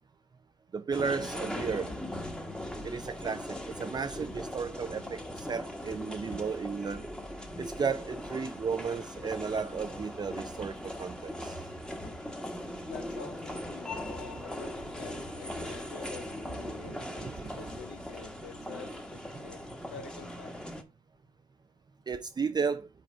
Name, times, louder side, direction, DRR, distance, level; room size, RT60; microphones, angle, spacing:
voice 1, 0.7-1.9 2.8-7.0 7.6-11.7 16.9-17.6 18.7-18.9 22.1-22.9, right 5 dB, 25° right, 0.4 m, -34 dB
sound 1, 0.9-20.8, left 1 dB, 5° left, 1.2 m, -40 dB
sound 2, 1.5-2.6 3.8-5.0 5.7-6.8 7.7-8.2 9.6-10.6 11.2-12.7 13.9-14.6 15.8-18.6, left 1 dB, 50° left, 1.9 m, -51 dB
voice 2, 12.9-16.3 16.6-19.6 19.9-20.5, left 7 dB, 85° left, 0.9 m, -47 dB
5.3 x 4.2 x 4.3 m
cardioid pair, 75°, 17 cm